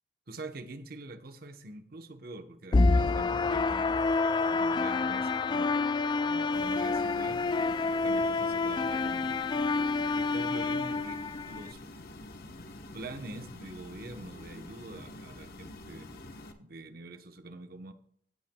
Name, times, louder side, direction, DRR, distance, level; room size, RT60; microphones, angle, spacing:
voice 1, 0.3-4.0 4.4-5.7 6.2-9.4 10.1-11.8 12.9-16.1 16.6-17.9, right 2 dB, 60° right, 8 dB, 1.1 m, -45 dB
sound 1, 2.7-11.7, left 3 dB, 25° left, 0.3 m, -28 dB
sound 2, 6.5-16.5, left 2 dB, 60° left, 1.2 m, -47 dB
16.5 x 9.1 x 2.3 m, 0.63 s
head